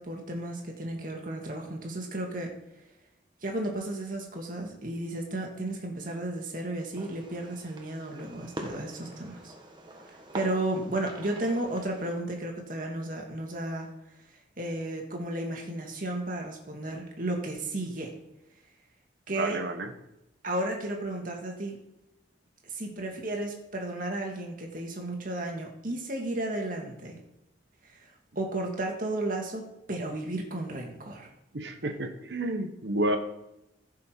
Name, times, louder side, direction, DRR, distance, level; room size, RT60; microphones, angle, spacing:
voice 1, 0.0-2.5 3.4-9.5 10.3-13.9 14.6-18.1 19.3-19.6 20.4-21.8 22.7-27.2 28.4-31.3, right 1 dB, 50° right, 1 dB, 2.1 m, -33 dB
Fireworks, 6.9-12.1, right 1 dB, 25° right, 1.5 m, -44 dB
voice 2, 19.3-19.9 31.5-33.2, right 1 dB, 80° right, 6 dB, 1.2 m, -30 dB
15.5 x 6.2 x 4.6 m, 0.88 s
head